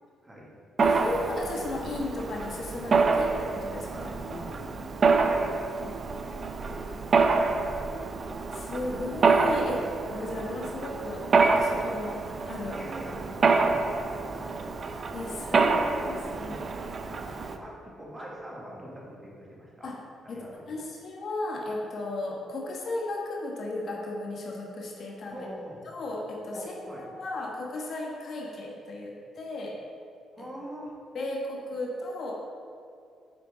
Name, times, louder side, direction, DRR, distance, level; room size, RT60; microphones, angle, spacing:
voice 1, 0.2-0.5 3.9-4.9 5.2-5.8 6.2-7.5 12.7-13.9 14.2-14.7 17.1-17.2 17.5-19.9 20.3-20.8 25.3-25.8 26.5-27.1 30.3-30.9, equal, 20° right, -4 dB, 1.7 m, -44 dB
voice 2, 0.8-3.9 5.8-5.9 8.5-12.8 15.1-16.6 19.8-20.0 20.3-25.5 25.9-29.8 30.4-30.5 31.1-32.3, left 2 dB, 55° left, -2 dB, 1.2 m, -35 dB
Mechanisms, 0.8-17.6, right 4 dB, 45° right, 0.5 m, -27 dB
7.5 x 5.3 x 3.8 m, 2.3 s
cardioid pair, 90°, 0 cm